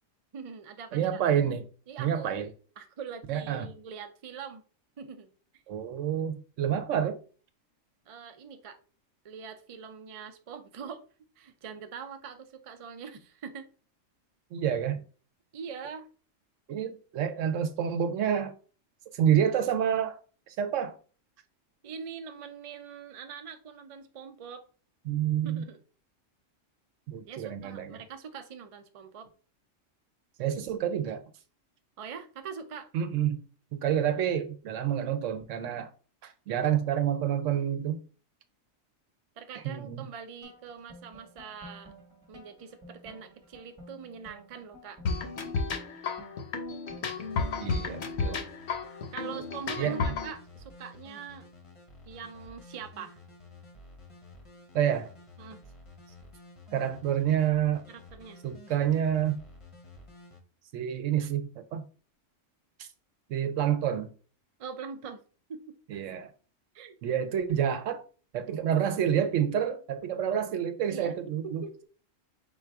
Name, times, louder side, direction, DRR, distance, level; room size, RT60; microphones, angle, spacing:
voice 1, 0.3-1.2 1.9-2.3 2.8-4.6 5.0-5.6 8.1-8.8 9.2-11.0 11.4-13.7 15.5-16.1 21.8-24.6 25.4-25.8 27.2-29.3 32.0-32.9 39.4-41.9 42.3-45.0 49.1-51.5 52.1-53.2 55.4-55.6 57.9-58.4 64.6-65.2 65.5-65.7 66.7-67.0 70.9-71.2 71.4-71.8, right 6 dB, 55° right, 0.3 m, -43 dB
voice 2, 0.9-1.6 2.0-2.5 3.3-3.7 5.7-7.2 14.5-15.0 16.7-18.5 19.1-20.2 20.5-21.0 25.1-25.6 27.1-28.0 30.4-31.2 32.9-33.4 33.7-35.9 36.2-38.0 39.6-40.1 47.6-48.4 49.8-50.0 54.7-55.1 56.7-57.8 58.4-59.4 60.7-61.8 62.8-62.9 63.3-64.1 65.9-66.3 67.0-68.0 68.3-71.8, right 9 dB, 75° right, 1.0 m, -28 dB
sound 1, 40.4-48.1, equal, 25° right, 1.0 m, -52 dB
sound 2, 45.1-50.3, left 4 dB, 60° left, 1.0 m, -32 dB
sound 3, 47.1-60.4, left 2 dB, 30° left, 0.8 m, -52 dB
3.9 x 2.5 x 4.5 m
omnidirectional pair, 1.3 m